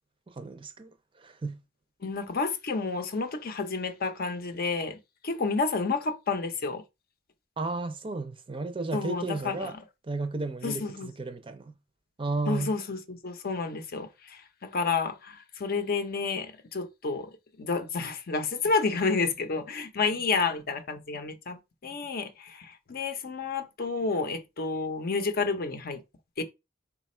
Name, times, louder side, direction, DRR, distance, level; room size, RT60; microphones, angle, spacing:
voice 1, 0.3-1.6 7.6-9.7 10.1-11.8 12.2-12.7, right 3 dB, 25° right, 0.5 m, -33 dB
voice 2, 2.0-5.0 5.2-6.8 8.9-9.8 10.6-11.1 12.5-26.0 26.4-26.5, left 4 dB, 50° left, 0.6 m, -30 dB
4.0 x 2.3 x 4.2 m
head